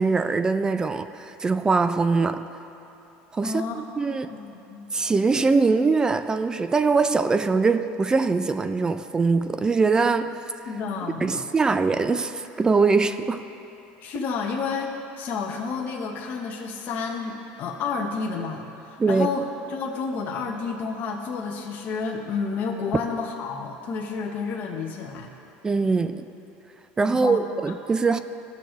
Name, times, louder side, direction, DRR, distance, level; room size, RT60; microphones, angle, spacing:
voice 1, 0.0-2.5 3.3-4.3 4.9-10.4 11.2-13.4 19.0-19.3 25.6-26.2 27.0-28.2, right 4 dB, 15° right, 0.3 m, -22 dB
voice 2, 3.4-3.8 4.1-4.9 10.7-11.4 14.0-25.3 27.1-27.4, left 5 dB, 45° left, 0.9 m, -30 dB
16.0 x 6.3 x 3.1 m
supercardioid pair, 125°, 4 cm